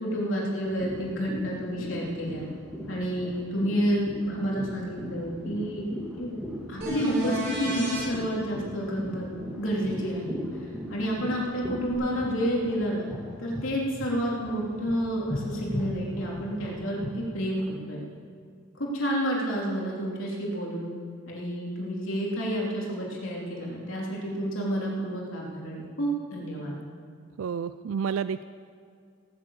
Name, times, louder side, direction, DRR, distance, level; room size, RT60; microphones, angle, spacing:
voice 1, 0.0-2.5 2.9-5.8 6.2-6.3 6.7-10.4 10.9-13.1 13.4-18.0 18.7-20.9 21.3-26.7, equal, 65° left, -3 dB, 3.2 m, -30 dB
sound 1, 0.7-13.7 14.0-17.1, equal, 5° right, 2.4 m, -38 dB
sound 2, 6.8-8.1 11.9-12.0, right 2 dB, 50° right, 4.6 m, -31 dB
voice 2, 27.4-28.4, right 7 dB, 75° right, 13 dB, 0.4 m, -30 dB
17.0 x 9.7 x 7.3 m, 2.2 s
head